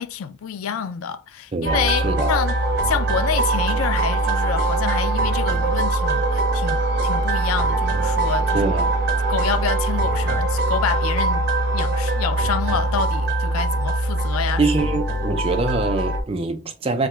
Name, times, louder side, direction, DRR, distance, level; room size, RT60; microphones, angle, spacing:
voice 1, 0.0-2.5 2.8-8.7 9.3-11.5 11.7-14.6, left 7 dB, 85° left, 0.3 m, -28 dB
voice 2, 1.5-2.3 8.5-9.0 14.6-17.1, right 3 dB, 25° right, 0.3 m, -24 dB
sound 1, 1.6-16.2, right 2 dB, 50° right, 0.7 m, -22 dB
2.8 x 2.2 x 3.2 m
head